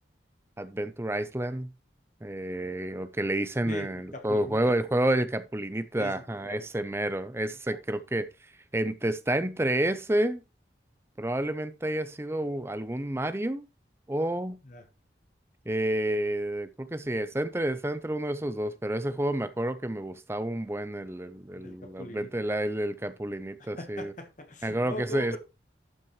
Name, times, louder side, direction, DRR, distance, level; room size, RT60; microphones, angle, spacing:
voice 1, 0.6-1.7 2.2-8.3 8.7-10.4 11.2-13.7 14.1-14.6 15.7-24.1 24.6-25.4, right 1 dB, 15° right, 0.5 m, -29 dB
voice 2, 3.7-4.7 6.0-6.7 14.6-14.8 21.6-22.5 23.6-25.4, left 1 dB, 40° left, 1.2 m, -41 dB
12.0 x 6.0 x 3.1 m
head